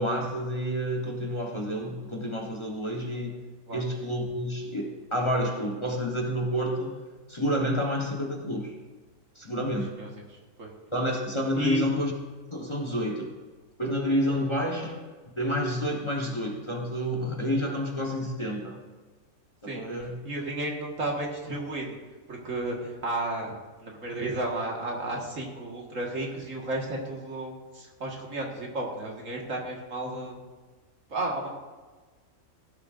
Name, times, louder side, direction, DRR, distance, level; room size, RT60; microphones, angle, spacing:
voice 1, 0.0-3.4 3.7-7.0 7.3-8.7 9.3-9.9 10.9-12.1 12.5-13.3 13.8-18.8 19.6-20.2, equal, 20° left, 0 dB, 1.2 m, -29 dB
voice 2, 11.6-11.9 19.7-19.8 20.2-21.9 22.3-23.5 23.8-30.4 31.1-31.5, right 2 dB, 65° right, -1 dB, 2.1 m, -32 dB
16.0 x 11.0 x 2.6 m, 1.3 s
omnidirectional pair, 1.4 m